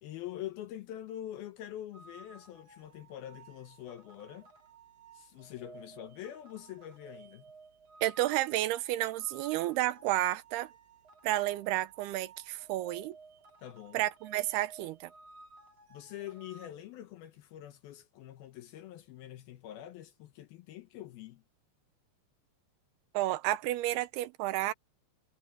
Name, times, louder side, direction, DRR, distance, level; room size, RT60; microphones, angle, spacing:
voice 1, 0.0-4.5 5.1-7.5 13.6-14.0 15.9-21.4, left 12 dB, 70° left, 2.5 m, -45 dB
sound 1, 1.9-16.7, right 4 dB, 45° right, 2.8 m, -56 dB
voice 2, 8.0-10.7 11.2-13.2 13.9-15.1 23.1-24.7, right 15 dB, 75° right, 2.7 m, -31 dB
omnidirectional pair, 5.0 m